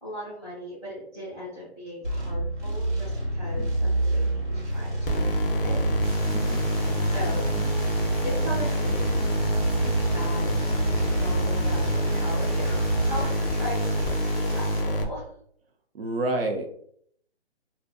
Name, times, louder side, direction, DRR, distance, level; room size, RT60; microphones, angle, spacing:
voice 1, 0.0-5.8 7.0-7.5 8.2-9.3 9.8-10.8 11.1-15.3, equal, ahead, -14 dB, 0.5 m, -38 dB
sound 1, 2.0-13.2, right 1 dB, 80° right, 1.3 m, -29 dB
voice 2, 3.6-3.9 6.3-6.7 15.9-16.7, right 2 dB, 60° right, 4 dB, 0.5 m, -30 dB
sound 2, 5.1-15.0, equal, 55° left, 0.4 m, -26 dB
sound 3, 6.0-14.8, right 1 dB, 35° right, 0.8 m, -43 dB
2.6 x 2.3 x 2.2 m, 0.64 s
hypercardioid pair, 165°, 34 cm